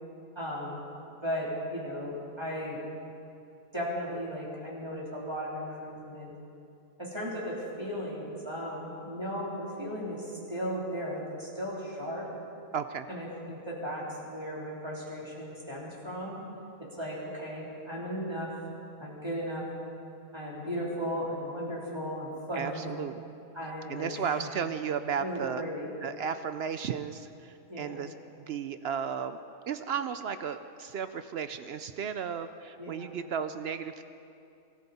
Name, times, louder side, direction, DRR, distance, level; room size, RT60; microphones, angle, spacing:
voice 1, 0.3-0.8 1.2-2.8 3.7-6.3 7.0-12.3 13.1-16.4 16.9-18.5 19.0-19.7 20.3-22.9 23.5-24.5 25.2-25.9 27.7-28.0 32.8-33.1, equal, 15° right, -6 dB, 3.4 m, -36 dB
voice 2, 12.7-13.1 22.5-23.2 23.9-25.6 26.0-29.4 29.7-34.0, right 7 dB, 65° right, 10 dB, 0.6 m, -34 dB
23.5 x 14.5 x 4.2 m, 2.6 s
omnidirectional pair, 1.6 m